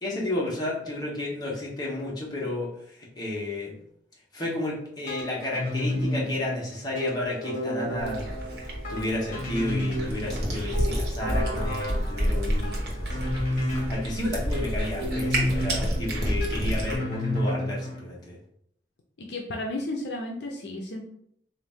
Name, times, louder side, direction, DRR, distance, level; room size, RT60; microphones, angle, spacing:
voice 1, 0.0-2.7 3.2-3.7 4.3-8.3 8.9-18.4, left 1 dB, 25° left, -4 dB, 1.1 m, -32 dB
sound 1, 5.1-18.0, left 1 dB, 50° left, 1.4 m, -32 dB
Cat, 8.0-17.0, equal, 65° right, 1.0 m, -29 dB
voice 2, 19.2-21.0, left 1 dB, 65° left, 0 dB, 0.6 m, -33 dB
3.9 x 2.6 x 3.5 m, 0.71 s
head